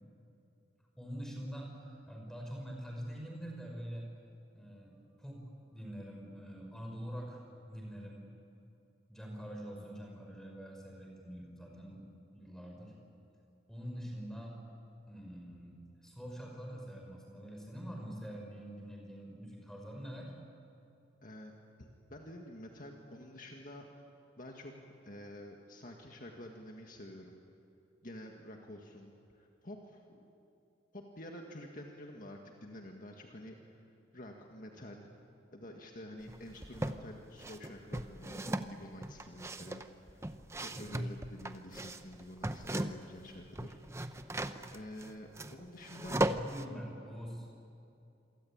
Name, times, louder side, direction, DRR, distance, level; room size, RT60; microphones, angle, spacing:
voice 1, 1.0-4.1 4.5-8.2 9.1-12.9 13.7-14.6 15.1-20.3 40.7-40.9 46.1-47.5, equal, 5° left, 0 dB, 5.6 m, -45 dB
voice 2, 21.2-21.5 21.8-24.0 24.4-27.4 28.0-30.2 30.9-33.8 34.1-35.1 35.5-43.8 44.7-46.2, left 1 dB, 45° left, 1 dB, 1.9 m, -49 dB
sound 1, 36.3-37.0 37.4-43.2 43.5-46.6, right 1 dB, 15° right, 0.8 m, -37 dB
27.5 x 23.5 x 8.9 m, 2.6 s
head